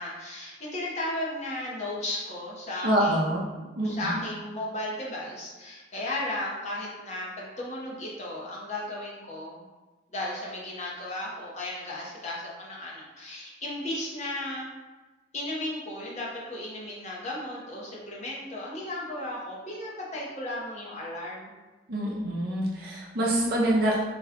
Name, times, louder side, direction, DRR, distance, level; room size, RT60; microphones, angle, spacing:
voice 1, 0.0-3.2 3.5-9.6 10.1-14.7 15.3-21.5, left 1 dB, 35° left, -5 dB, 0.9 m, -35 dB
voice 2, 2.8-3.4 3.8-4.2 21.9-24.0, right 1 dB, 55° right, -5 dB, 0.5 m, -26 dB
4.1 x 2.3 x 3.6 m, 1.2 s
head